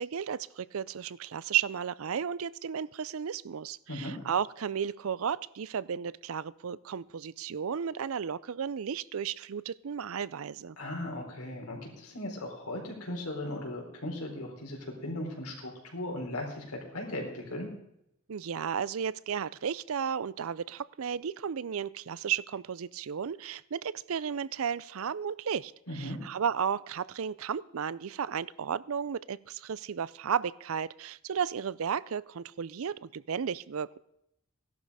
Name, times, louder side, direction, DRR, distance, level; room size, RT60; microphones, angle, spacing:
voice 1, 0.0-10.8 18.3-34.0, right 7 dB, 75° right, 20 dB, 0.5 m, -34 dB
voice 2, 10.8-17.7 25.9-26.2, left 1 dB, 90° left, 1 dB, 4.1 m, -37 dB
16.0 x 11.5 x 4.9 m, 0.80 s
head